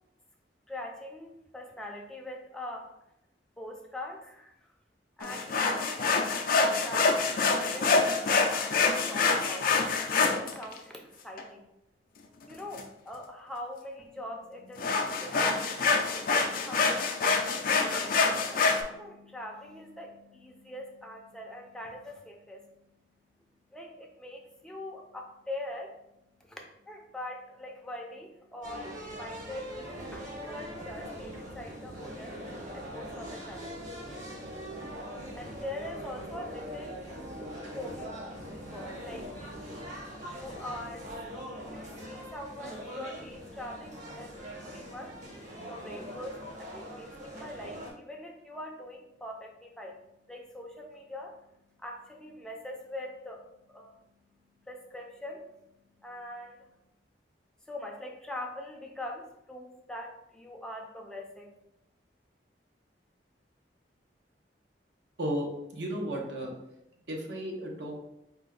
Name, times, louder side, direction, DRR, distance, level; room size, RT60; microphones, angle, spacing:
voice 1, 0.7-2.9 3.6-4.7 5.2-6.4 6.8-11.6 12.5-22.8 23.7-25.9 26.4-32.4 32.7-33.7 35.3-37.0 37.7-38.2 38.5-39.3 40.2-41.0 41.3-45.1 45.7-50.0 50.3-51.4 51.8-54.0 54.6-55.5 56.0-56.7 57.7-61.5, left 1 dB, 5° left, 0 dB, 0.5 m, -43 dB
sound 1, 5.2-10.8 11.4-11.5 12.5-12.8 14.8-18.8, left 4 dB, 55° left, 0.4 m, -26 dB
sound 2, 28.6-47.9, equal, 45° right, 1.1 m, -42 dB
voice 2, 65.7-66.5 67.1-68.0, equal, 70° right, 0 dB, 0.8 m, -33 dB
4.3 x 2.2 x 3.7 m, 0.85 s
head